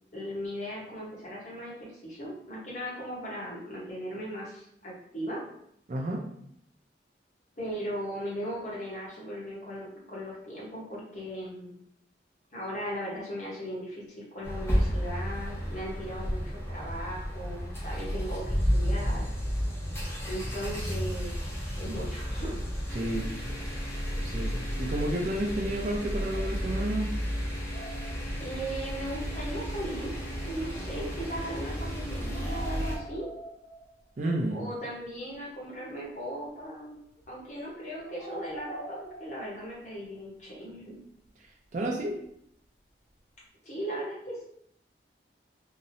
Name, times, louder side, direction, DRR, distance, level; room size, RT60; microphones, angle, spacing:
voice 1, 0.1-5.4 7.6-11.8 12.5-14.1 14.3-19.2 20.3-22.6 28.4-30.1 30.4-33.3 34.5-37.0 37.3-40.9 43.6-44.4, equal, 40° left, -5 dB, 0.8 m, -38 dB
voice 2, 5.9-6.2 22.9-23.3 24.2-27.1 34.2-34.6 41.7-42.2, right 1 dB, 40° right, -1 dB, 0.4 m, -31 dB
sound 1, 14.4-33.0, equal, 15° left, 0.6 m, -32 dB
sound 2, 26.3-27.1 27.5-28.6 32.1-34.2 34.9-35.0 35.3-35.4 35.8-36.1 36.9-37.4 38.0-40.0 42.2-42.3 43.1-43.2, right 1 dB, 85° left, 0.9 m, -45 dB
2.8 x 2.0 x 2.6 m, 0.72 s
head